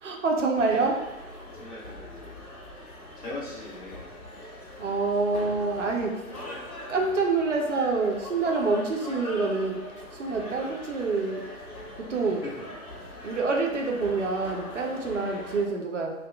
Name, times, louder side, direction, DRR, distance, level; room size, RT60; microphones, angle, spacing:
voice 1, 0.0-1.0 4.8-6.2 6.9-9.8 10.1-11.5 12.0-12.4 13.2-16.1, right 3 dB, 55° right, 1 dB, 0.6 m, -26 dB
sound 1, 0.6-15.7, left 1 dB, 85° left, 0.9 m, -42 dB
voice 2, 1.4-2.4 3.2-4.1 6.4-7.1 10.3-10.8 12.1-12.5 13.0-13.3 15.1-15.4, left 2 dB, 25° left, -7 dB, 0.8 m, -42 dB
2.6 x 2.2 x 3.4 m, 1.0 s
figure-of-eight pair, 130°, 43 cm